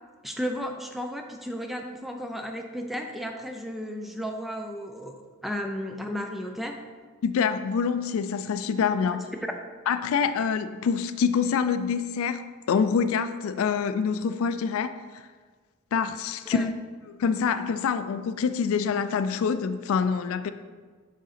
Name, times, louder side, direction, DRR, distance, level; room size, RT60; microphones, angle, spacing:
voice 1, 0.2-6.8 16.5-16.7, equal, ahead, 3 dB, 0.4 m, -34 dB
voice 2, 7.2-9.2 9.9-15.2 15.9-16.7 17.1-20.5, left 6 dB, 70° left, 11 dB, 0.3 m, -26 dB
6.3 x 3.9 x 4.2 m, 1.5 s
head